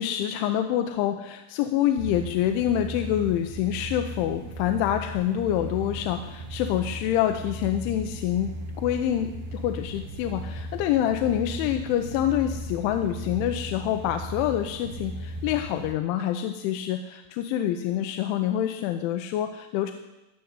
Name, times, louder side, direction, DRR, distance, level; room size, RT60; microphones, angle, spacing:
voice 1, 0.0-8.5 8.8-19.9, left 11 dB, 90° left, 7 dB, 3.2 m, -26 dB
sound 1, 2.0-15.9, right 1 dB, 70° right, 1.9 m, -37 dB
16.0 x 7.1 x 9.6 m, 0.99 s
omnidirectional pair, 5.4 m